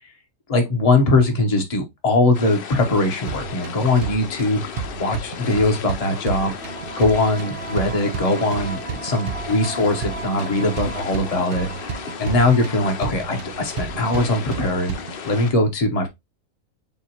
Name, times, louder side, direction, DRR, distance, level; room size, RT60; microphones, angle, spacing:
voice 1, 0.5-4.6 5.0-6.5 7.0-11.7 12.2-15.0 15.2-16.1, left 2 dB, 25° left, 0.9 m, -21 dB
sound 1, 2.3-15.5, left 7 dB, 85° left, 0.5 m, -35 dB
sound 2, 3.3-15.3, right 6 dB, 75° right, 0.5 m, -33 dB
sound 3, 5.8-14.4, right 4 dB, 40° right, 1.0 m, -38 dB
7.0 x 2.5 x 2.8 m
omnidirectional pair, 1.7 m